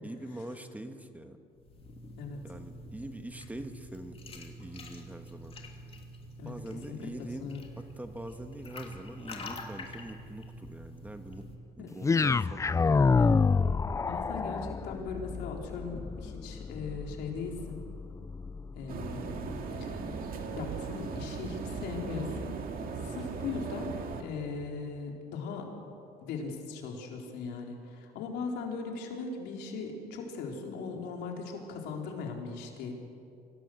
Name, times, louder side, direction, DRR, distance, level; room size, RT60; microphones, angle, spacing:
voice 1, 0.0-1.4 2.4-5.5 6.4-7.5 7.8-11.5 11.8-13.3, right 1 dB, 10° right, 7 dB, 1.5 m, -44 dB
sound 1, 1.5-11.6, left 1 dB, 35° left, 3.0 m, -46 dB
sound 2, 12.0-20.2, left 4 dB, 20° left, 0.4 m, -29 dB
voice 2, 14.1-17.8 18.7-19.5 19.8-20.0 20.5-22.6 23.0-25.7 26.2-32.9, left 4 dB, 85° left, 1 dB, 3.9 m, -39 dB
sound 3, 18.9-24.2, right 4 dB, 60° right, 2.4 m, -38 dB
25.0 x 17.5 x 7.8 m, 2.6 s
cardioid pair, 110°, 17 cm